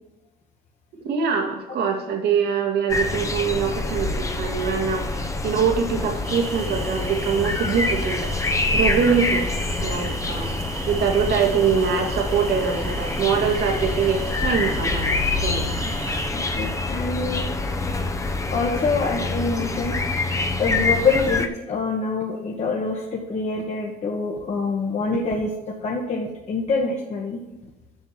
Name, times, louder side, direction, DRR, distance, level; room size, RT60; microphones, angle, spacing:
voice 1, 1.0-8.3 8.7-9.5 9.8-10.5 10.9-15.1 15.3-15.7, right 6 dB, 75° right, 2 dB, 2.2 m, -23 dB
sound 1, 2.9-21.5, left 3 dB, 20° left, 0.9 m, -26 dB
sound 2, 6.2-16.3, right 3 dB, 35° right, 1.4 m, -35 dB
voice 2, 16.3-17.5 18.5-20.0 20.6-25.5 25.8-27.4, left 4 dB, 40° left, -2 dB, 1.4 m, -25 dB
7.8 x 5.8 x 7.5 m, 1.0 s
cardioid pair, 110°, 17 cm